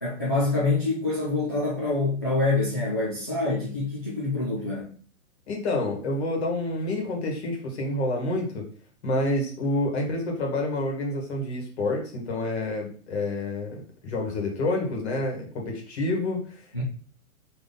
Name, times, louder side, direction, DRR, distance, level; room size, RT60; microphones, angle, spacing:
voice 1, 0.0-4.9 16.7-16.8, left 3 dB, 20° left, -7 dB, 0.3 m, -26 dB
voice 2, 5.5-8.6 9.0-16.8, left 2 dB, 50° left, 1 dB, 1.7 m, -28 dB
3.9 x 3.4 x 3.9 m, 0.43 s
hypercardioid pair, 155°, 42 cm